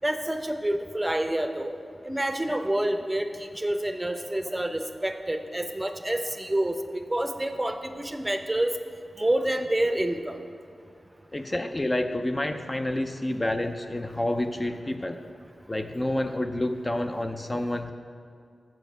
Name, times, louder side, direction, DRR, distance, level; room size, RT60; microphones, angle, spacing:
voice 1, 0.0-1.7 2.0-6.7 7.1-8.7 9.2-10.4, right 1 dB, 15° right, 7 dB, 0.6 m, -28 dB
voice 2, 11.3-15.2 15.7-17.9, left 1 dB, 30° left, 7 dB, 0.4 m, -29 dB
7.2 x 7.1 x 5.4 m, 2.3 s
cardioid pair, 45°, 0 cm